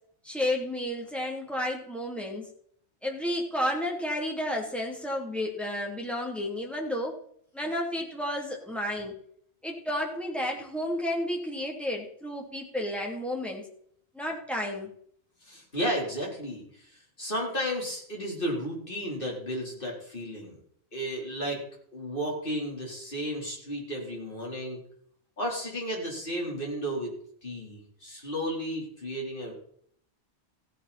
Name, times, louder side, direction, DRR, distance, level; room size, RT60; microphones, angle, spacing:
voice 1, 0.2-2.4 3.0-7.2 7.5-9.1 9.6-13.6 14.1-14.9, left 1 dB, ahead, -1 dB, 2.9 m, -31 dB
voice 2, 15.4-20.6 20.9-21.6 21.9-24.8 25.4-27.1 27.4-29.5, equal, 50° left, -1 dB, 4.2 m, -33 dB
15.5 x 9.9 x 4.3 m, 0.63 s
omnidirectional pair, 1.2 m